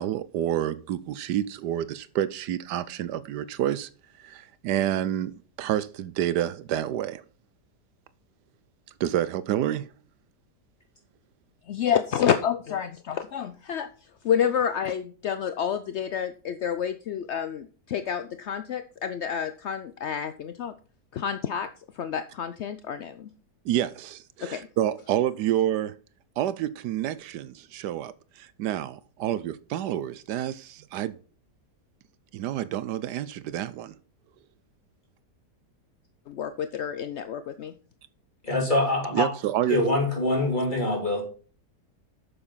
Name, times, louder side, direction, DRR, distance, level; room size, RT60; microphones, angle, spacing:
voice 1, 0.0-3.9 4.2-5.3 5.6-7.2 9.0-9.8 23.6-25.9 26.4-31.1 32.3-33.9 39.1-39.8, right 11 dB, 80° right, 1.2 m, -28 dB
voice 2, 11.7-13.9 14.2-20.7 21.1-21.7 22.0-23.3 24.4-24.7 36.3-37.7, left 8 dB, 70° left, 0.6 m, -29 dB
voice 3, 38.4-39.3 39.7-41.2, left 2 dB, 25° left, 3.5 m, -24 dB
8.6 x 7.0 x 5.6 m
omnidirectional pair, 1.8 m